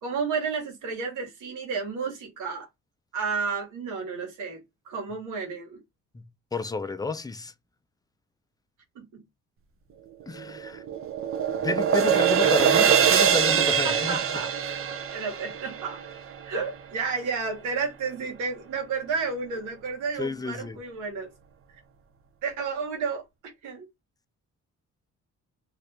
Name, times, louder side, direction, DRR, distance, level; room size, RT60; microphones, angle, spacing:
voice 1, 0.0-2.7 3.1-5.8 8.9-9.2 12.4-12.6 13.8-14.5 15.1-16.0 16.5-21.3 22.4-23.9, right 5 dB, 90° right, 1.5 m, -32 dB
voice 2, 6.1-7.5 10.3-10.8 11.6-14.2 20.2-20.8, left 3 dB, 15° left, 0.4 m, -31 dB
sound 1, 10.4-16.7, right 8 dB, 45° right, 0.6 m, -23 dB
2.8 x 2.5 x 3.3 m
cardioid pair, 90°, 30 cm